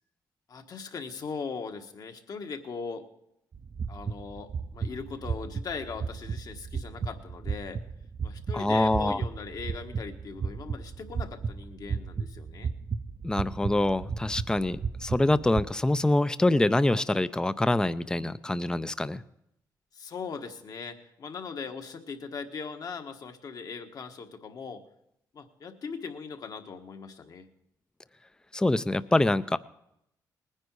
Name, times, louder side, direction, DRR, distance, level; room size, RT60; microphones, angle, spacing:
voice 1, 0.5-3.1 3.9-7.8 8.2-12.7 19.9-24.8 25.3-27.5, left 5 dB, 55° left, 6 dB, 1.4 m, -39 dB
sound 1, 3.5-15.6, right 5 dB, 45° right, 0.7 m, -35 dB
voice 2, 8.5-9.2 13.2-19.2 28.5-29.6, left 2 dB, 10° left, 15 dB, 0.5 m, -25 dB
19.5 x 9.8 x 4.7 m, 0.79 s
cardioid pair, 75°, 8 cm